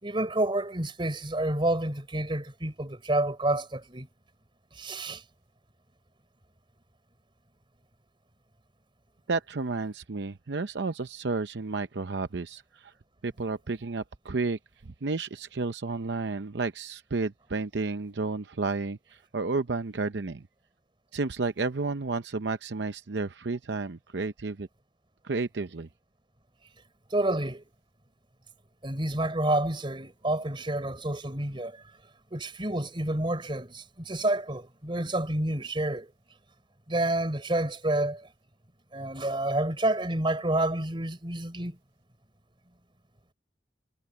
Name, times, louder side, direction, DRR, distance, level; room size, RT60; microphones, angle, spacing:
voice 1, 0.0-4.1 4.8-5.2 27.1-27.6 28.8-31.7 32.3-36.1 36.9-38.2 38.9-41.8, right 1 dB, 30° right, 3.6 m, -29 dB
voice 2, 9.3-12.9 13.2-20.4 21.1-24.7 25.2-25.9, right 3 dB, 70° right, 0.7 m, -32 dB
head